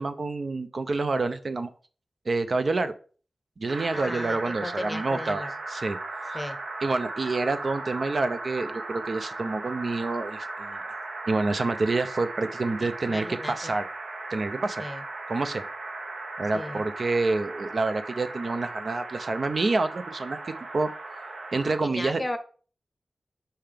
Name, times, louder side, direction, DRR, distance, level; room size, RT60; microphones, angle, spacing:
voice 1, 0.0-1.7 2.3-2.9 3.6-5.4 5.7-6.0 6.2-6.4 6.8-10.8 11.3-13.9 14.3-14.8 15.3-15.6 16.4-20.4 20.7-20.9 21.5-22.2, right 3 dB, 55° right, 10 dB, 0.5 m, -28 dB
sound 1, 3.7-21.8, right 2 dB, 75° right, 0.9 m, -37 dB
voice 2, 3.9-5.5 6.3-6.6 12.8-13.8 14.8-15.0 16.5-16.8 21.8-22.4, left 1 dB, 20° left, 8 dB, 0.7 m, -35 dB
5.6 x 5.5 x 3.4 m, 0.40 s
wide cardioid pair, 105°, 0 cm